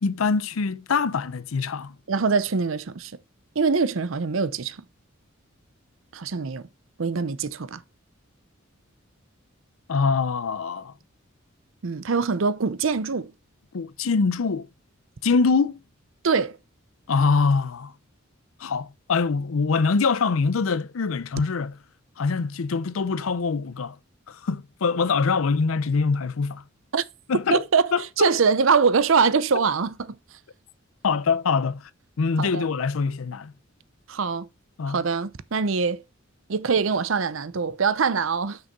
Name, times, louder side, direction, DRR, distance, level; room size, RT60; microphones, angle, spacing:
voice 1, 0.0-1.9 9.9-10.9 13.7-14.7 15.2-15.8 17.1-17.9 18.6-21.7 22.2-24.0 24.3-26.6 27.3-27.6 27.9-28.4 31.0-31.9 32.2-33.5 34.8-35.0, left 4 dB, 90° left, 0.6 m, -24 dB
voice 2, 2.1-3.1 3.6-4.8 6.1-6.6 7.0-7.8 11.8-13.3 16.2-16.6 26.9-27.0 27.5-27.9 28.2-30.0 32.4-32.7 34.1-34.5 34.9-36.0 36.5-38.6, right 5 dB, 70° right, 0.6 m, -23 dB
6.2 x 5.2 x 6.7 m
head